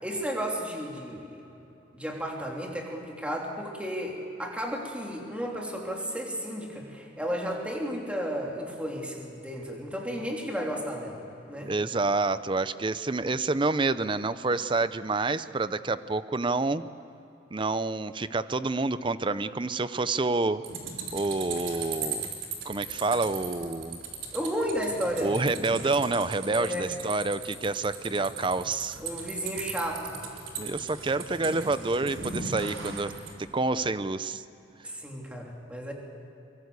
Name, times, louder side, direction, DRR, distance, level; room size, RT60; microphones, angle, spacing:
voice 1, 0.0-1.4 1.9-11.7 24.3-25.4 26.5-26.9 29.0-30.1 34.8-35.9, equal, 5° right, -1 dB, 3.2 m, -33 dB
voice 2, 11.6-16.8 17.5-20.6 21.1-22.2 22.6-24.0 25.2-29.0 30.6-33.1 33.4-34.4, right 3 dB, 25° right, 13 dB, 0.6 m, -28 dB
sound 1, 20.6-33.3, right 5 dB, 85° right, 3.9 m, -38 dB
24.0 x 23.0 x 8.1 m, 3.0 s
head